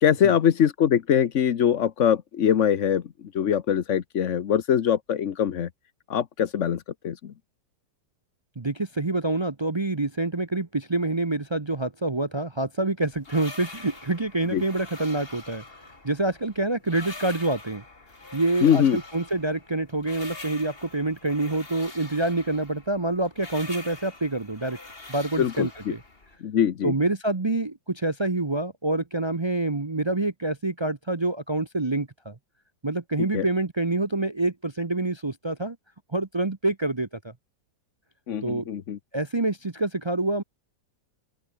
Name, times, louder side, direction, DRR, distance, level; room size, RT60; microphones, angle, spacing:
voice 1, 0.0-5.7 6.1-7.3 14.5-14.6 18.6-19.0 25.4-25.9 26.4-26.9 33.2-33.5 38.3-39.0, left 9 dB, 50° left, 1.1 m, -23 dB
voice 2, 8.6-15.6 16.0-17.8 18.3-24.8 25.1-26.0 26.8-32.3 32.8-35.8 36.1-37.3 38.4-38.6 39.1-40.4, right 2 dB, 30° right, 0.5 m, -27 dB
sound 1, 13.0-26.4, left 3 dB, 30° left, 3.2 m, -44 dB
open air
omnidirectional pair, 1.9 m